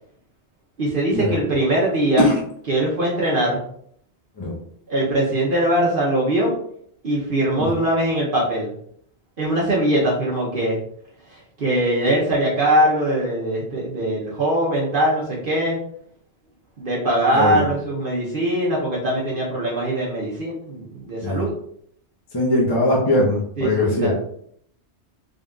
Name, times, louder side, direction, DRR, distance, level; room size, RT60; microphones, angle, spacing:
voice 1, 0.8-2.3 2.7-3.6 4.9-6.5 7.0-8.7 9.4-10.8 11.6-15.8 16.8-21.5 23.6-24.1, right 1 dB, 55° right, -4 dB, 1.0 m, -21 dB
voice 2, 17.3-17.7 21.2-21.4 22.3-24.1, left 1 dB, 25° left, -4 dB, 0.8 m, -20 dB
3.8 x 3.7 x 2.3 m, 0.66 s
omnidirectional pair, 1.1 m